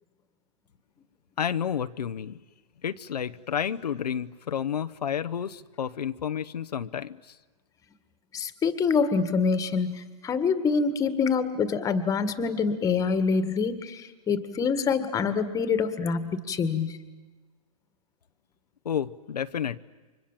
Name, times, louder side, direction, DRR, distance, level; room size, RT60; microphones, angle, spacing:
voice 1, 1.4-2.4 2.8-7.4 18.8-19.8, left 8 dB, 85° left, 10 dB, 0.9 m, -30 dB
voice 2, 8.3-17.0, left 5 dB, 15° left, 12 dB, 1.8 m, -26 dB
30.0 x 25.0 x 7.5 m, 1.3 s
hypercardioid pair, 135°, 20 cm